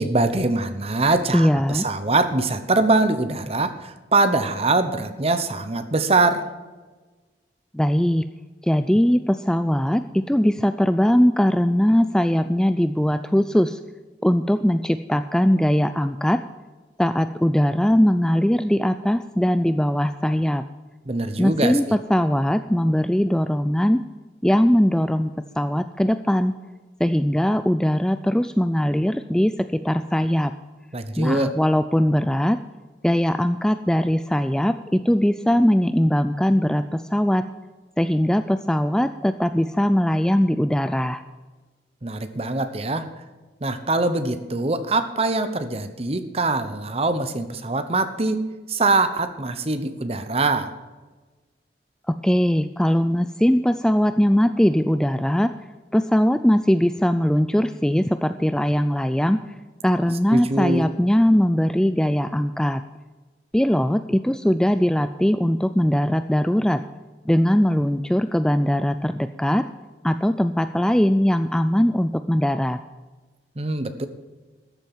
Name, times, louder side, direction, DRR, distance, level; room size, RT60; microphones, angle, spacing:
voice 1, 0.0-6.5 21.1-22.0 30.9-31.5 42.0-43.1 43.6-48.4 48.7-50.7 60.3-60.8 73.6-74.1, right 2 dB, 35° right, 10 dB, 1.0 m, -23 dB
voice 2, 1.3-1.9 7.7-8.2 8.6-13.8 14.2-16.4 17.0-20.6 21.4-21.8 22.1-24.0 24.4-26.5 27.0-30.5 31.2-32.6 33.0-37.4 38.0-41.2 52.1-55.5 55.9-59.4 59.8-62.8 63.5-66.8 67.3-69.6 70.0-72.8, equal, 5° left, 10 dB, 0.3 m, -20 dB
13.5 x 7.4 x 7.2 m, 1.3 s
head